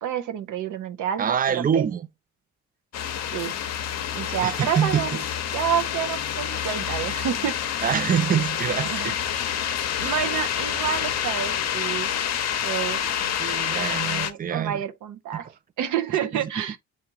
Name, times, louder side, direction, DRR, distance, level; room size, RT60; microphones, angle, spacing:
voice 1, 0.0-1.4 1.7-1.8 3.3-3.5 4.1-5.2 5.5-7.8 8.9-9.2 10.0-12.1 12.6-13.0 13.7-15.5 15.8-16.8, right 9 dB, 75° right, 0.7 m, -29 dB
voice 2, 1.2-2.1 4.4-5.2 7.8-9.2 10.0-10.1 13.4-14.8 15.3-15.5 16.3-16.6, right 8 dB, 30° right, 0.4 m, -25 dB
sound 1, 2.9-14.3, left 9 dB, 60° left, 0.7 m, -28 dB
6.8 x 2.5 x 2.7 m
cardioid pair, 90°, 30 cm